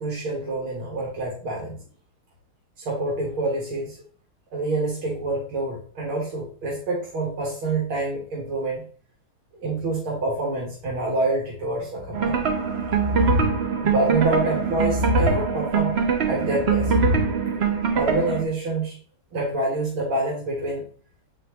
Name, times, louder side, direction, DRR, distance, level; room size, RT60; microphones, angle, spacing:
voice 1, 0.0-1.8 2.8-4.0 4.5-8.9 9.5-12.5 13.8-16.9 17.9-19.0 19.3-20.8, right 2 dB, 75° right, -3 dB, 2.4 m, -27 dB
sound 1, 12.1-18.4, right 4 dB, 55° right, 0.7 m, -22 dB
8.0 x 4.3 x 3.1 m, 0.42 s
omnidirectional pair, 2.3 m